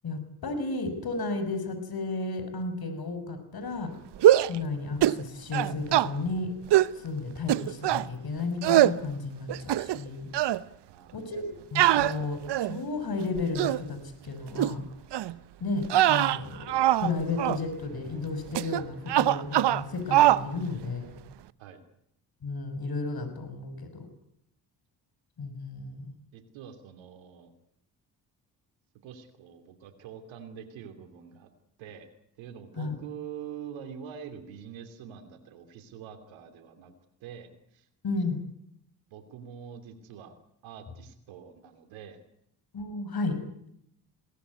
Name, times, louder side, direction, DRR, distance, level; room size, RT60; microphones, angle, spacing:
voice 1, 0.0-3.9 4.5-6.5 6.9-10.3 11.1-11.4 11.7-14.9 15.6-21.2 22.4-24.1 25.4-26.1 32.8-32.9 38.0-38.5 42.7-43.4, left 3 dB, 55° left, 9 dB, 6.3 m, -33 dB
sound 1, 4.2-4.6 5.0-5.2 5.5-6.1 6.7-6.9 7.5-8.1 8.6-9.0 9.5-10.1 10.3-10.6 11.8-12.8 13.4-13.8 14.6-14.7 15.1-15.3 15.8-17.1 17.4-17.6 18.5-18.8 19.1-19.8 20.1-20.4, right 13 dB, 65° right, 1.0 m, -22 dB
voice 2, 10.9-11.2 21.6-21.8 26.3-27.5 29.0-31.5 31.8-36.9 37.2-37.9 39.1-40.3 40.6-42.2, right 8 dB, 85° right, 7 dB, 2.9 m, -45 dB
21.5 x 18.0 x 9.6 m, 0.73 s
supercardioid pair, 50°, 45 cm